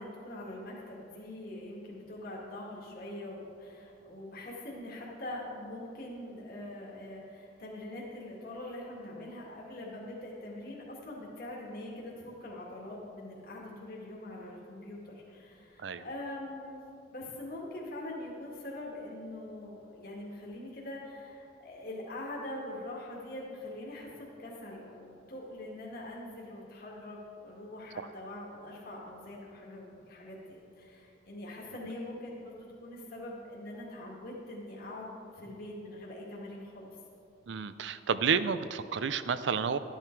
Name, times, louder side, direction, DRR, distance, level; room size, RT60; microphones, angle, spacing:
voice 1, 0.0-16.8 17.1-36.9, left 1 dB, 55° left, -4 dB, 1.9 m, -43 dB
voice 2, 37.5-39.8, right 6 dB, 85° right, 13 dB, 0.5 m, -30 dB
12.0 x 9.3 x 4.5 m, 2.7 s
head